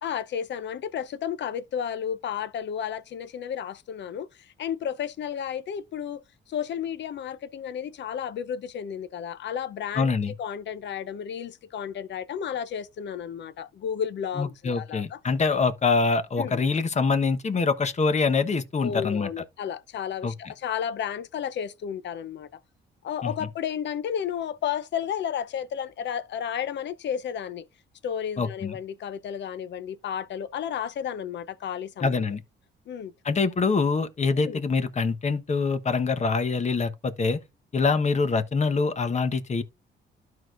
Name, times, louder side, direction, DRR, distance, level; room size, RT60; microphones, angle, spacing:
voice 1, 0.0-4.3 4.6-6.2 6.5-10.1 10.4-15.2 16.4-16.6 18.8-22.5 23.0-27.6 28.0-32.3 32.9-33.1 34.4-34.6, left 8 dB, 65° left, 0.8 m, -32 dB
voice 2, 9.9-10.3 14.4-19.4 20.2-20.3 23.2-23.3 28.4-28.7 32.0-32.4 33.2-37.4 37.7-39.6, left 4 dB, 35° left, 1.1 m, -25 dB
12.5 x 4.8 x 2.5 m
cardioid pair, 90°, 20 cm